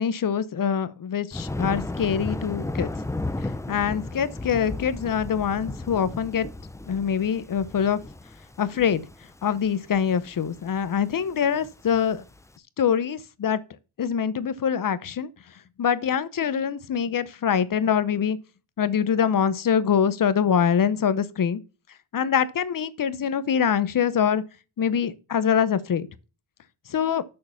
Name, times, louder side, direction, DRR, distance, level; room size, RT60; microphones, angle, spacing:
voice 1, 0.0-2.9 3.7-6.5 6.9-8.0 8.6-9.0 9.4-12.2 12.8-13.6 14.0-15.3 15.8-18.4 18.8-21.6 22.1-24.4 24.8-26.1 26.9-27.2, left 7 dB, 45° left, 0.8 m, -24 dB
Thunder, 1.3-12.4, left 2 dB, 5° left, 0.4 m, -34 dB
6.6 x 6.6 x 7.1 m
wide cardioid pair, 130°, 47 cm